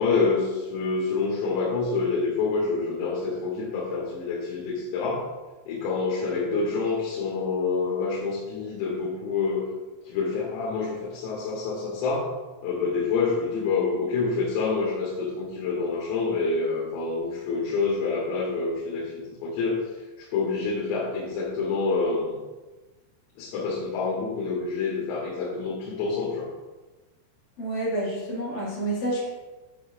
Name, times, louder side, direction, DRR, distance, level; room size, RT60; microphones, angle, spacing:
voice 1, 0.0-5.3 5.7-9.7 10.1-12.3 12.6-19.8 20.2-22.4 23.4-26.5, left 4 dB, 90° left, -4 dB, 3.8 m, -27 dB
voice 2, 27.6-29.3, right 1 dB, 55° left, -7 dB, 2.8 m, -29 dB
8.3 x 5.5 x 2.4 m, 1.2 s
omnidirectional pair, 6.0 m